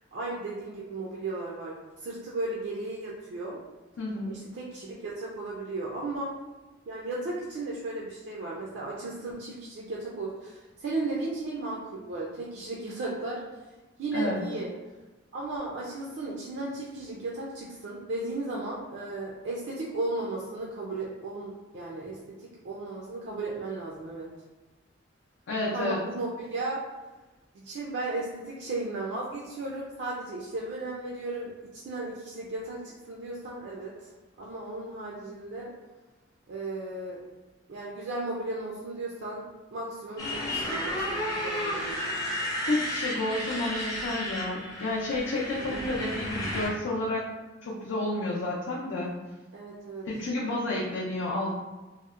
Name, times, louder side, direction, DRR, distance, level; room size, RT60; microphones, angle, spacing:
voice 1, 0.1-1.7 2.0-3.6 4.2-6.3 6.9-13.4 14.0-14.7 15.3-24.3 25.7-26.8 27.5-34.1 34.4-35.7 36.5-37.2 37.7-42.3 45.7-45.9 49.5-50.1, right 2 dB, 65° right, -4 dB, 0.4 m, -35 dB
voice 2, 4.0-4.4 14.1-14.4 25.5-26.0 42.7-47.3 47.6-49.1 50.1-51.5, left 2 dB, 75° left, -6 dB, 0.4 m, -30 dB
Motorcycle, 40.2-46.7, left 1 dB, 20° left, 0.5 m, -32 dB
2.7 x 2.1 x 2.4 m, 1.1 s
head